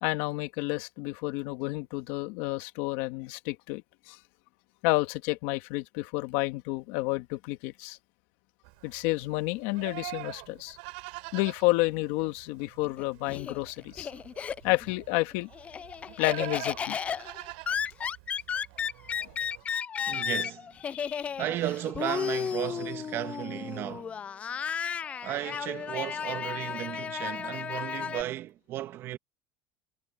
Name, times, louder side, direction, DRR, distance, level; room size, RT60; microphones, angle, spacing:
voice 1, 0.0-4.2 4.8-8.0 8.8-10.8 11.3-14.1 14.6-15.5 16.2-17.0 20.9-21.3, left 21 dB, 80° left, 2.0 m, -30 dB
Livestock farm animals working animals, 8.6-19.6, right 28 dB, 85° right, 6.0 m, -45 dB
Laughter, 12.8-14.9 15.3-28.2, left 7 dB, 25° left, 0.3 m, -34 dB
voice 2, 20.1-20.7 21.4-24.1 25.2-29.2, right 13 dB, 50° right, 1.9 m, -34 dB
cardioid pair, 130°, 5 cm